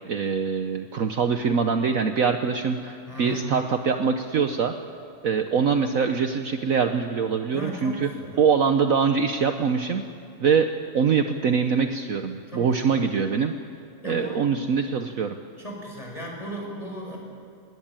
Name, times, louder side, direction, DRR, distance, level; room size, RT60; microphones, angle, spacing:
voice 1, 0.1-4.7 5.2-8.1 8.4-10.1 10.4-10.7 10.9-13.5 14.0-15.4, right 6 dB, 60° right, 7 dB, 1.2 m, -23 dB
voice 2, 3.1-3.5 7.5-8.4 12.5-13.0 14.0-14.5 15.6-17.2, right 1 dB, 20° left, -1 dB, 5.7 m, -36 dB
21.0 x 19.0 x 8.9 m, 2.6 s
omnidirectional pair, 1.8 m